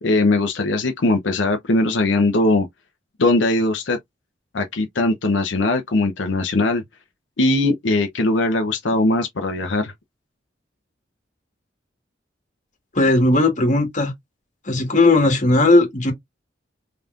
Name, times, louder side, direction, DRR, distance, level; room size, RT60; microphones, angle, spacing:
voice 1, 0.0-2.7 3.2-4.0 4.5-6.8 7.4-9.9, left 2 dB, 80° left, 0.7 m, -20 dB
voice 2, 12.9-14.1 14.7-16.1, left 2 dB, 45° left, 1.5 m, -16 dB
3.9 x 3.5 x 2.4 m
head